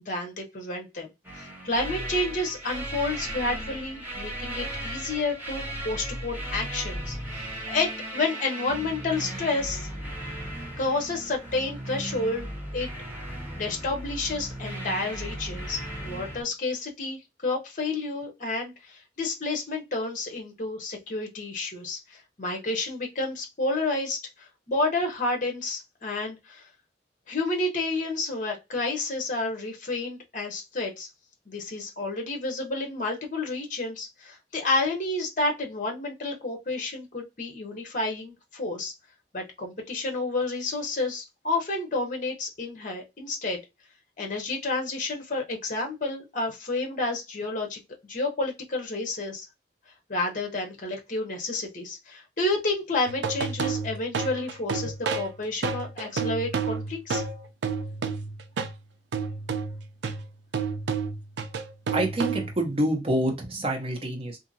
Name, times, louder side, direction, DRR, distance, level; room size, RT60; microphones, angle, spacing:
voice 1, 0.1-9.9 10.2-10.3 10.8-12.9 13.5-26.7 27.3-31.1 31.5-38.9 39.3-43.6 44.2-47.8 48.1-49.5 50.1-57.2, left 2 dB, 45° left, 0.8 m, -30 dB
sound 1, 1.2-16.4, right 1 dB, 10° right, 1.0 m, -36 dB
sound 2, 53.1-58.8 59.1-62.7, right 5 dB, 85° right, 0.4 m, -30 dB
voice 2, 61.9-64.4, right 1 dB, 35° right, 0.8 m, -27 dB
2.8 x 2.6 x 2.6 m
head